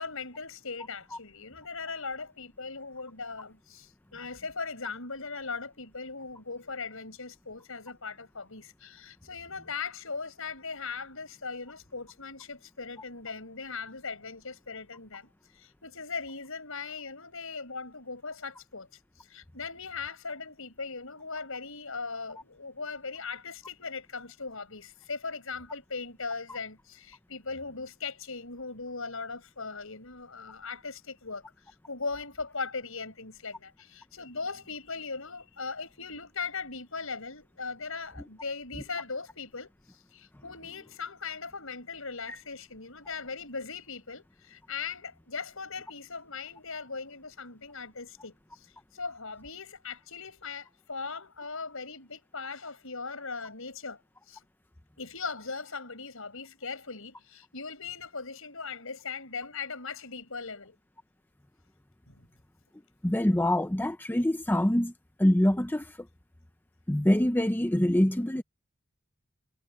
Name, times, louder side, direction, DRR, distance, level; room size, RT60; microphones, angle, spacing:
voice 1, 0.0-18.9 19.2-39.7 40.1-48.3 48.6-54.0 54.3-54.4 55.0-60.8 62.1-62.3, left 4 dB, 70° left, 7.5 m, -39 dB
voice 2, 63.0-64.9 65.2-66.0 66.9-68.4, left 1 dB, 10° left, 0.7 m, -25 dB
head